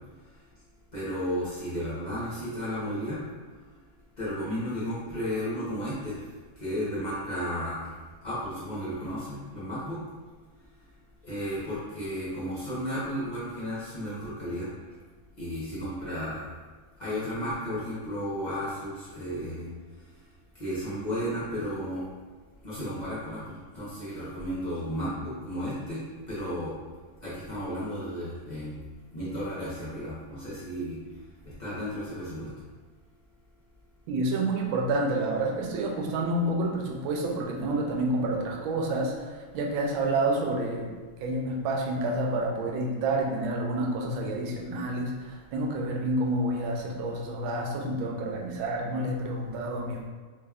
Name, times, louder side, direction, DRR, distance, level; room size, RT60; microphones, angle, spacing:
voice 1, 0.9-3.2 4.2-6.2 6.6-7.9 8.2-10.0 11.2-14.7 15.3-16.5 17.0-19.7 20.6-22.0 22.6-26.0 26.3-26.7 27.2-28.8 29.1-31.0 31.4-32.5, equal, 85° left, -11 dB, 0.4 m, -33 dB
voice 2, 34.1-40.9 41.2-50.0, right 2 dB, 85° right, 0 dB, 1.4 m, -29 dB
4.0 x 2.3 x 3.3 m, 1.4 s
omnidirectional pair, 2.1 m